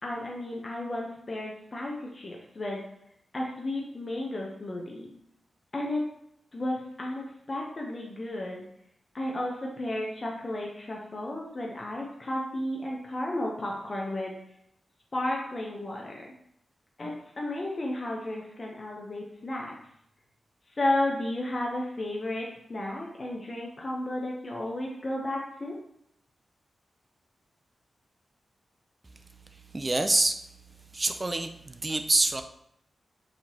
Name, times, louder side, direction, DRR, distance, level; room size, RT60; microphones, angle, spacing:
voice 1, 0.0-2.8 3.3-5.1 5.7-6.0 6.5-8.6 9.1-14.3 15.1-16.2 17.0-19.8 20.7-25.7, left 1 dB, 45° left, -2 dB, 0.7 m, -33 dB
voice 2, 29.7-30.4 30.9-32.4, right 2 dB, 30° right, 7 dB, 0.3 m, -26 dB
4.2 x 2.9 x 2.8 m, 0.74 s
cardioid pair, 55°, 0 cm